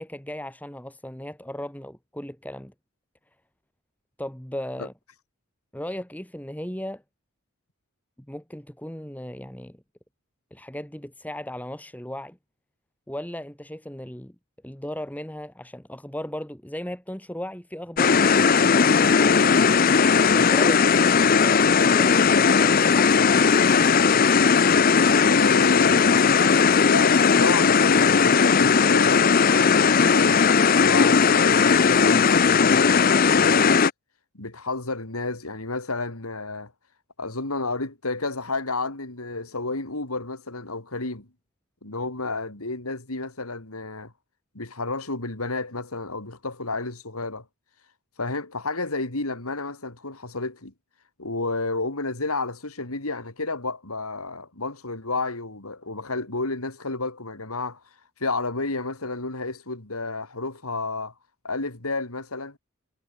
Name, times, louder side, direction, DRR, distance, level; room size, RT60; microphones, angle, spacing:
voice 1, 0.0-2.7 4.2-4.9 5.7-7.0 8.3-9.8 10.5-12.4 13.1-14.4 14.6-20.0 20.3-23.6, left 1 dB, 5° left, 1.7 m, -36 dB
sound 1, 18.0-33.9, left 5 dB, 40° left, 0.5 m, -18 dB
voice 2, 25.1-26.1 26.9-33.7 34.3-36.7 37.2-41.3 41.8-44.1 44.6-47.4 48.2-50.7 51.2-57.8 58.2-61.1 61.4-62.6, left 3 dB, 80° left, 3.6 m, -31 dB
head